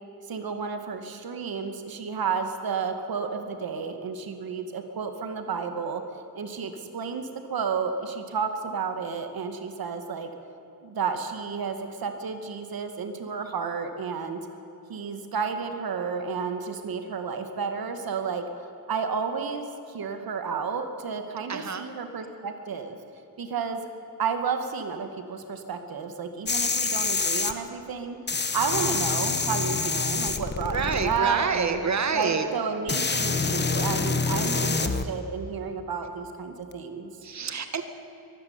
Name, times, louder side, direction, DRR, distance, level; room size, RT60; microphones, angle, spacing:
voice 1, 0.3-6.0 6.4-10.3 10.8-14.4 14.9-23.0 23.4-23.9 24.2-28.2 28.5-31.8 32.1-37.1, right 5 dB, 90° right, 7 dB, 2.2 m, -31 dB
voice 2, 21.5-21.8 30.6-32.5 37.2-37.8, right 5 dB, 50° right, 8 dB, 1.9 m, -27 dB
sound 1, 26.5-27.5 28.3-31.2 32.2-32.3 32.9-35.0 36.7-36.8, left 4 dB, 30° left, 1.2 m, -26 dB
23.0 x 14.5 x 9.7 m, 3.0 s
wide cardioid pair, 155°, 35 cm